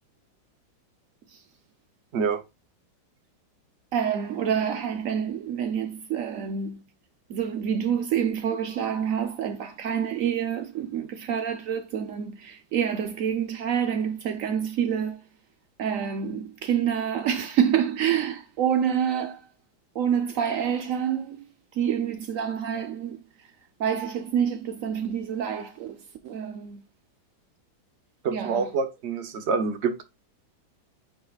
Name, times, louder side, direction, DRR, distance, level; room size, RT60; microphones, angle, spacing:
voice 1, 3.9-6.8 7.3-15.2 15.8-19.5 19.9-21.5 21.7-23.5 23.8-26.8 28.3-28.7, right 8 dB, 75° right, 0.7 m, -27 dB
voice 2, 28.2-30.0, right 5 dB, 50° right, 0.8 m, -26 dB
9.1 x 4.6 x 2.4 m
omnidirectional pair, 2.2 m